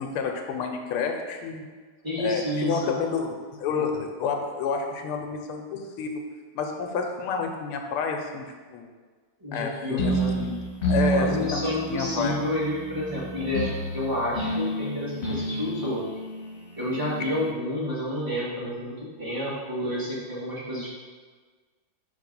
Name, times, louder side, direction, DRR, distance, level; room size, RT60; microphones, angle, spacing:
voice 1, 0.0-1.6 2.2-6.2 6.5-8.5 8.7-8.9 9.5-10.6 10.9-12.4, left 5 dB, 85° left, 3 dB, 1.6 m, -29 dB
voice 2, 2.0-2.9 9.4-10.3 11.1-16.1 16.7-20.9, left 1 dB, 10° right, -8 dB, 1.4 m, -30 dB
sound 1, 10.0-17.5, right 1 dB, 40° left, 1.1 m, -30 dB
5.9 x 3.5 x 5.3 m, 1.5 s
omnidirectional pair, 2.4 m